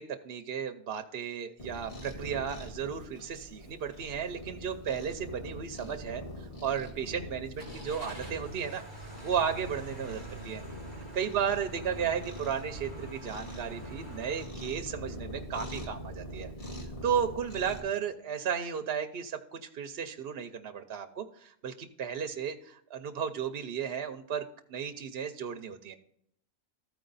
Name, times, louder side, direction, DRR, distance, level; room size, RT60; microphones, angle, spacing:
voice 1, 0.0-6.2 6.6-8.8 9.2-10.6 11.1-16.5 17.0-25.9, right 7 dB, 60° right, 7 dB, 0.8 m, -34 dB
Cat, 1.6-17.8, equal, 30° left, 1.7 m, -43 dB
Car / Engine starting, 7.6-14.4, right 2 dB, 60° left, 2.8 m, -47 dB
14.0 x 4.7 x 3.9 m, 0.69 s
omnidirectional pair, 1.2 m